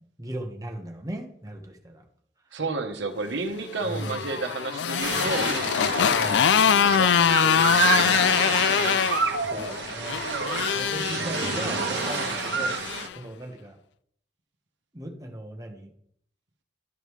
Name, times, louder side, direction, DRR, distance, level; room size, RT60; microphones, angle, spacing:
voice 1, 0.2-2.0 3.9-4.2 6.2-6.4 9.5-10.2 10.7-12.8 13.1-13.8 14.9-15.9, right 1 dB, 20° right, 3 dB, 1.2 m, -37 dB
voice 2, 2.5-9.0 10.9-11.5, right 3 dB, 85° right, 6 dB, 1.1 m, -33 dB
Motorcycle, 3.7-13.1, left 8 dB, 75° left, 0.4 m, -24 dB
sound 1, 5.0-13.1, right 4 dB, 70° right, 1.1 m, -29 dB
12.5 x 5.2 x 3.2 m, 0.66 s
head